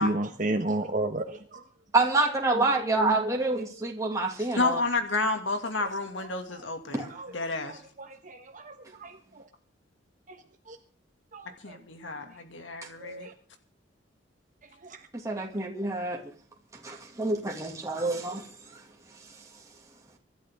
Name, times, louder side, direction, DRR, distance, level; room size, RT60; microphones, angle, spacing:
voice 1, 0.0-1.6 6.2-6.6 7.1-7.3 7.7-9.4 10.3-10.4 10.7-10.8 11.3-11.8 12.1-12.2 13.0-13.3 14.8-15.0 15.4-15.5, right 2 dB, 45° right, 1.2 m, -33 dB
voice 2, 1.9-4.8 7.0-7.1 15.2-16.2 16.8-18.4, right 2 dB, 15° right, 2.4 m, -27 dB
voice 3, 4.6-7.1 7.3-7.8 11.6-13.3, left 3 dB, 80° left, 2.4 m, -30 dB
24.5 x 12.0 x 3.7 m
head